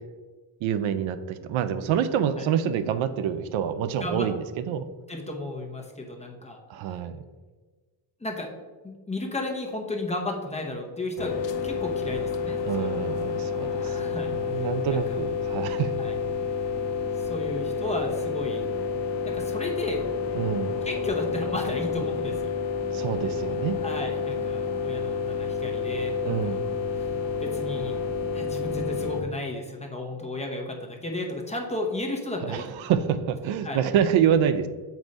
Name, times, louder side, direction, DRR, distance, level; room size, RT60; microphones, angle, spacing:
voice 1, 0.6-4.9 6.7-7.2 12.6-16.0 16.3-16.4 20.3-20.8 22.9-23.8 26.2-26.6 32.4-34.7, right 8 dB, 75° right, 12 dB, 0.5 m, -27 dB
voice 2, 5.1-6.6 8.2-8.5 8.8-11.3 11.6-12.9 13.2-13.3 13.8-15.2 16.0-16.1 17.2-18.7 19.2-20.0 20.8-22.5 23.8-26.6 27.0-27.1 27.4-28.0 28.3-32.6 33.6-33.8, left 2 dB, 15° left, 1 dB, 0.8 m, -33 dB
sound 1, 11.2-29.2, left 5 dB, 65° left, 0.7 m, -29 dB
7.4 x 2.7 x 5.3 m, 1.3 s
cardioid pair, 130°, 48 cm